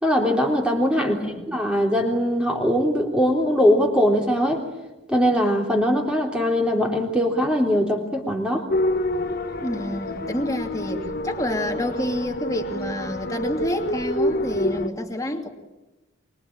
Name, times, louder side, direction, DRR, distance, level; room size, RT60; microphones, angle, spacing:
voice 1, 0.0-1.2 1.5-4.6 5.1-8.7, equal, 5° right, 0 dB, 3.4 m, -21 dB
voice 2, 1.0-1.5 9.6-15.5, left 1 dB, 15° left, 3 dB, 2.8 m, -28 dB
sound 1, 8.7-14.9, left 1 dB, 45° left, 1.6 m, -27 dB
25.0 x 23.0 x 8.9 m, 1.1 s
head